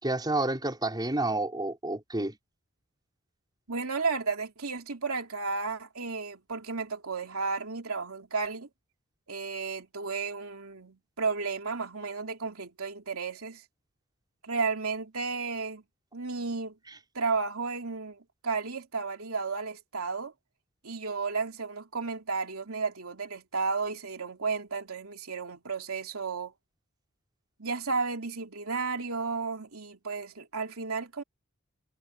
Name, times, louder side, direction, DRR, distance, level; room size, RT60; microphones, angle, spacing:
voice 1, 0.0-2.4, right 2 dB, 20° right, 5.3 m, -29 dB
voice 2, 3.7-8.7 9.3-13.6 14.4-15.8 16.1-16.7 17.1-20.3 20.8-26.5 27.6-31.2, right 4 dB, 80° right, 3.0 m, -33 dB
head